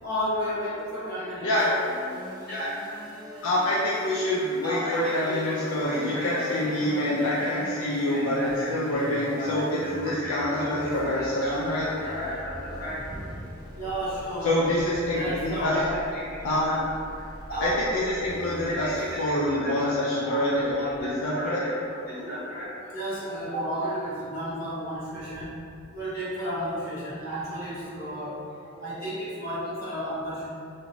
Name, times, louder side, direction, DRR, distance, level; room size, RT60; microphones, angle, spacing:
voice 1, 0.0-1.9 2.5-2.9 3.5-3.6 4.6-16.8 17.1-17.8 18.2-19.9 20.2-25.5 25.9-30.5, equal, 45° left, -11 dB, 1.1 m, -33 dB
sound 1, 1.6-19.4, equal, 20° right, 0.4 m, -44 dB
voice 2, 3.4-8.4 8.7-11.8 14.4-15.7 16.4-16.7 17.6-18.9 19.2-20.7 21.0-21.6, left 1 dB, 80° left, -6 dB, 0.4 m, -26 dB
2.8 x 2.1 x 2.6 m, 2.4 s
head